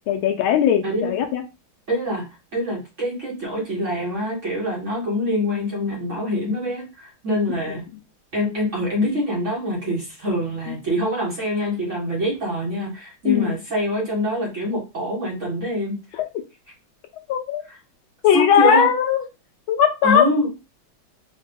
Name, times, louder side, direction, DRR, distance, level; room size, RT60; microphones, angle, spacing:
voice 1, 0.1-1.4 7.7-7.8 10.7-10.8 13.2-13.5 16.2-16.3 17.3-17.6 18.2-19.2 19.7-20.3, left 8 dB, 80° left, 5 dB, 1.4 m, -18 dB
voice 2, 1.9-2.3 2.5-7.8 8.3-16.0 17.7-17.8 18.3-18.9 20.0-20.5, equal, 50° right, -3 dB, 0.9 m, -25 dB
4.2 x 2.2 x 3.3 m, 0.27 s
omnidirectional pair, 2.2 m